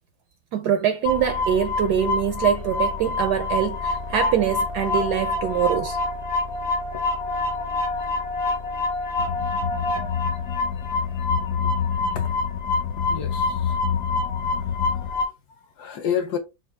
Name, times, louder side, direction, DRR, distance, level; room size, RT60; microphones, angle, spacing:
voice 1, 0.5-6.0, right 9 dB, 75° right, 0.9 m, -23 dB
sound 1, 1.0-15.2, left 2 dB, 40° left, 0.9 m, -27 dB
sound 2, 9.2-15.1, left 8 dB, 90° left, 0.7 m, -28 dB
voice 2, 13.1-14.0 14.4-16.4, left 8 dB, 65° left, 1.1 m, -32 dB
6.3 x 2.6 x 3.2 m
omnidirectional pair, 2.1 m